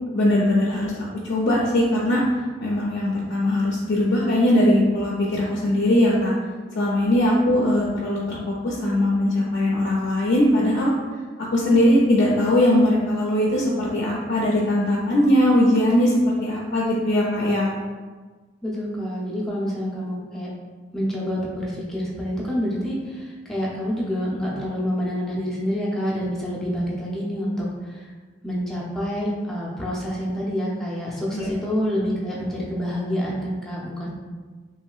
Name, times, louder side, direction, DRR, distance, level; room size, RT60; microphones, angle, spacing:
voice 1, 0.1-2.2 2.6-6.3 6.7-10.9 11.4-17.7 31.3-31.5, left 1 dB, 60° left, -4 dB, 0.4 m, -20 dB
voice 2, 18.6-20.5 20.9-28.1 28.4-34.1, equal, ahead, -6 dB, 0.6 m, -27 dB
3.0 x 2.7 x 2.3 m, 1.4 s
head